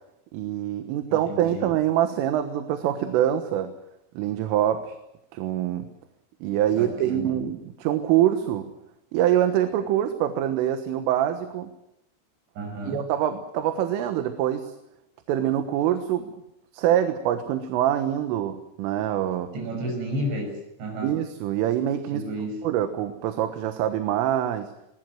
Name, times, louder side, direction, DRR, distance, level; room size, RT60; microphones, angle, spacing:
voice 1, 0.3-3.7 4.2-5.0 5.3-5.9 6.4-8.7 9.1-11.7 12.9-14.7 15.3-16.3 16.7-19.5 21.0-22.3 22.6-24.7, right 11 dB, 80° right, 8 dB, 3.8 m, -25 dB
voice 2, 1.1-1.7 6.7-7.4 12.6-13.0 19.5-21.1 22.1-22.6, equal, 60° right, 3 dB, 9.0 m, -32 dB
24.0 x 19.5 x 7.7 m, 0.83 s
omnidirectional pair, 5.9 m